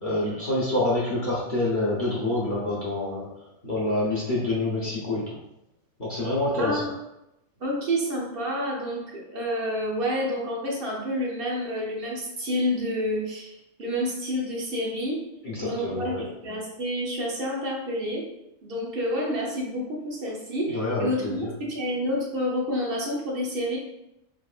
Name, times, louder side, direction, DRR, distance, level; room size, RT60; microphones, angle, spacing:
voice 1, 0.0-3.3 3.6-5.2 6.0-6.8 15.4-16.2 20.7-21.5, left 2 dB, 40° left, -7 dB, 0.8 m, -27 dB
voice 2, 6.6-6.9 7.6-13.5 13.8-15.2 15.6-18.2 18.6-23.8, equal, 45° right, -3 dB, 0.8 m, -29 dB
4.5 x 3.5 x 2.4 m, 0.87 s
omnidirectional pair, 1.8 m